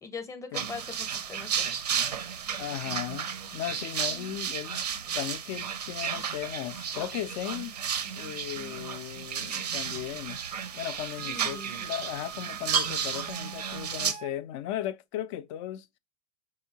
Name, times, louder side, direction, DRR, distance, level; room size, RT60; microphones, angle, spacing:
voice 1, 0.0-1.7 4.1-4.4 11.2-11.7, left 4 dB, 15° left, 0.7 m, -41 dB
sound 1, 0.5-14.1, right 7 dB, 85° right, 0.6 m, -33 dB
voice 2, 2.6-4.8 5.1-7.7 8.2-10.4 10.7-15.9, left 12 dB, 50° left, 0.4 m, -36 dB
Wind instrument woodwind instrument, 10.3-14.3, right 9 dB, 30° right, 0.4 m, -46 dB
3.7 x 3.6 x 2.7 m
hypercardioid pair, 95°, 20 cm